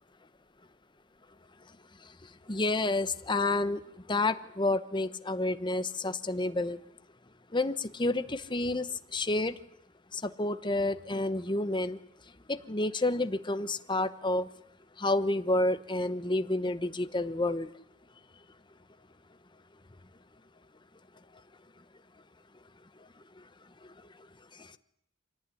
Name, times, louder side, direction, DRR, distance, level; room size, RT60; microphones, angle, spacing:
voice 1, 2.0-6.8 7.5-9.6 10.1-12.0 12.5-14.5 15.0-17.7 23.4-23.5 24.5-24.8, left 2 dB, 20° left, 11 dB, 1.0 m, -30 dB
25.5 x 17.5 x 9.9 m, 0.79 s
head